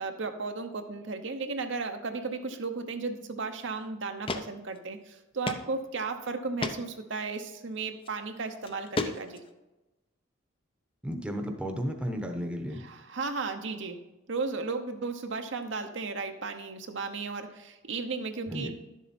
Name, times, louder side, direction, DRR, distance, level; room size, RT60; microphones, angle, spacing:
voice 1, 0.0-9.4 12.8-14.0 14.3-18.7, right 4 dB, 65° right, 6 dB, 0.8 m, -35 dB
sound 1, 3.6-3.7 4.3-4.4 4.8-4.9 5.5-5.6 6.0-6.1 6.6-6.8 7.9-8.1 8.6-9.5, left 3 dB, 25° left, 0.6 m, -32 dB
voice 2, 11.0-12.8 18.5-18.7, equal, 5° right, 3 dB, 0.9 m, -33 dB
11.0 x 7.3 x 4.2 m, 1.0 s
head